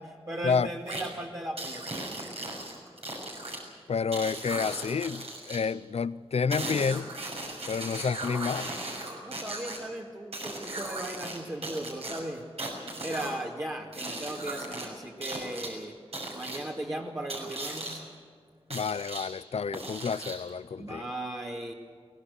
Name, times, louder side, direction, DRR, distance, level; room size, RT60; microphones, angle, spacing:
voice 1, 0.0-1.9 9.2-12.4 13.0-15.9 16.3-18.0 20.8-21.7, right 1 dB, 35° right, -3 dB, 2.2 m, -37 dB
sound 1, 0.9-1.1 1.6-3.6 4.1-5.6 6.5-9.8 10.3-11.4 11.6-13.4 13.9-14.9 15.2-15.7 16.1-16.6 17.3-18.0 18.7-19.3 19.7-20.5, right 2 dB, 75° right, 6.5 m, -37 dB
voice 2, 3.9-7.1 7.7-8.7 18.7-21.1, left 5 dB, 85° left, 17 dB, 0.6 m, -29 dB
23.5 x 19.5 x 6.8 m, 2.1 s
wide cardioid pair, 90°, 10 cm